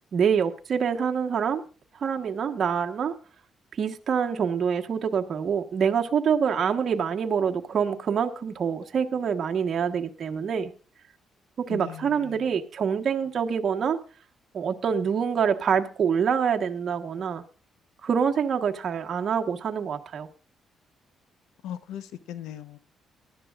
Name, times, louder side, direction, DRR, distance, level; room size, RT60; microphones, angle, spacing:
voice 1, 0.1-1.6 2.0-3.1 3.8-10.7 11.6-14.0 14.5-17.4 18.0-20.3, right 7 dB, 55° right, 1.2 m, -26 dB
voice 2, 11.7-12.5 21.6-22.8, left 10 dB, 90° left, 0.9 m, -39 dB
19.0 x 11.5 x 2.4 m
cardioid pair, 90°, 0 cm